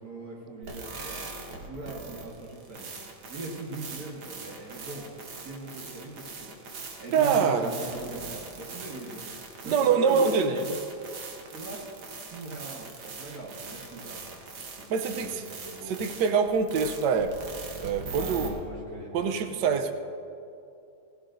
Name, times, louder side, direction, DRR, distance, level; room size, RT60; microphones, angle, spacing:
voice 1, 0.0-2.9 3.3-5.1 5.4-6.5 7.0-9.3 9.6-10.6 11.5-11.9 12.3-16.0 18.2-19.9, right 2 dB, 50° right, -5 dB, 2.1 m, -40 dB
sound 1, 0.6-18.5, right 4 dB, 85° right, 2.1 m, -41 dB
voice 2, 7.1-7.7 9.6-10.6 14.9-15.3 15.9-17.3 17.8-18.6 19.1-19.9, right 6 dB, 70° right, 7 dB, 1.3 m, -24 dB
18.0 x 15.5 x 2.6 m, 2.6 s
omnidirectional pair, 2.2 m